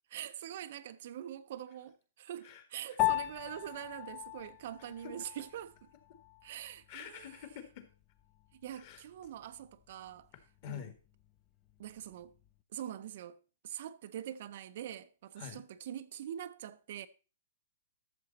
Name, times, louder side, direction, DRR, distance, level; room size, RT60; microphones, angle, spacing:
voice 1, 0.1-5.9 6.4-7.3 8.5-10.3 10.6-10.8 11.8-12.3 12.7-13.4 13.6-17.1, right 11 dB, 50° right, 0.6 m, -44 dB
voice 2, 2.4-3.0 5.0-5.1 6.9-7.9 8.7-9.0 10.6-10.9 15.4-15.6, left 10 dB, 40° left, 1.7 m, -47 dB
Piano, 3.0-12.6, left 18 dB, 20° left, 0.5 m, -40 dB
12.5 x 6.9 x 4.0 m
hypercardioid pair, 165°, 0 cm